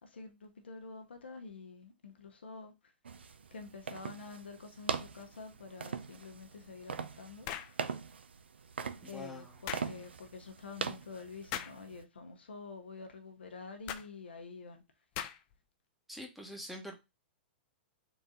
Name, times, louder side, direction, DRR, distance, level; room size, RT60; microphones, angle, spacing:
voice 1, 0.0-2.7 3.5-7.5 9.0-14.8, left 4 dB, 85° left, 0.9 m, -48 dB
sound 1, 3.1-12.0, right 5 dB, 90° right, 0.4 m, -42 dB
sound 2, 7.4-7.8 9.7-9.9 11.5-11.8 13.9-14.1 15.2-15.6, left 11 dB, 40° left, 0.5 m, -39 dB
voice 2, 9.0-9.6 16.1-17.0, left 1 dB, ahead, 0.9 m, -45 dB
3.9 x 2.7 x 3.7 m
hypercardioid pair, 120°, 6 cm